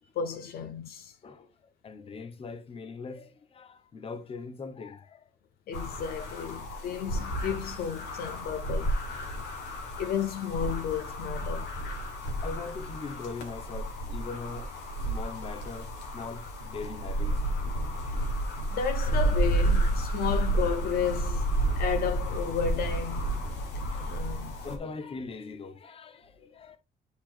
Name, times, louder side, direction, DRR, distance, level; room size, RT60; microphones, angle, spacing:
voice 1, 0.2-1.1 5.7-9.0 10.0-11.7 18.7-23.3 24.0-24.6, left 7 dB, 65° left, 0.8 m, -33 dB
voice 2, 1.2-5.3 9.8-9.9 12.4-17.4 17.9-18.8 21.6-21.8 23.4-24.2 24.6-26.8, left 4 dB, 35° left, 1.0 m, -42 dB
sound 1, 5.7-24.8, right 1 dB, 80° left, 1.6 m, -31 dB
10.5 x 4.2 x 2.6 m
cardioid pair, 110°, 17 cm